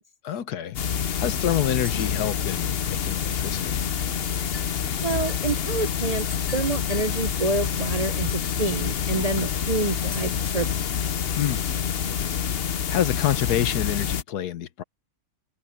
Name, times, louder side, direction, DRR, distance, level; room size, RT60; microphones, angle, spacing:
voice 1, 0.2-3.8 9.4-9.5 11.4-11.6 12.9-14.8, left 11 dB, 80° left, 1.4 m, -27 dB
sound 1, 0.7-14.2, left 8 dB, 50° left, 0.8 m, -27 dB
sound 2, 1.8-2.3 3.0-3.6 3.9-4.0 4.2-9.2 10.0-11.1, left 1 dB, 30° left, 5.5 m, -47 dB
voice 2, 5.0-6.3 6.5-10.8, right 2 dB, 40° right, 0.6 m, -27 dB
omnidirectional pair, 1.7 m